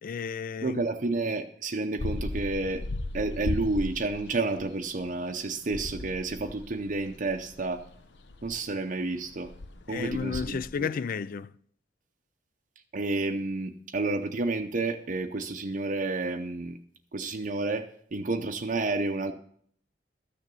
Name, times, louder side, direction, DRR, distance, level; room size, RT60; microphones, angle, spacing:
voice 1, 0.0-0.8 9.9-11.5, left 6 dB, 50° left, 0.4 m, -32 dB
voice 2, 0.6-2.8 3.1-7.8 8.4-9.5 9.9-10.9 12.9-16.8 17.1-19.3, right 3 dB, 45° right, 0.6 m, -30 dB
sound 1, 2.0-10.7, left 2 dB, 70° left, 0.7 m, -37 dB
13.0 x 6.7 x 6.2 m
head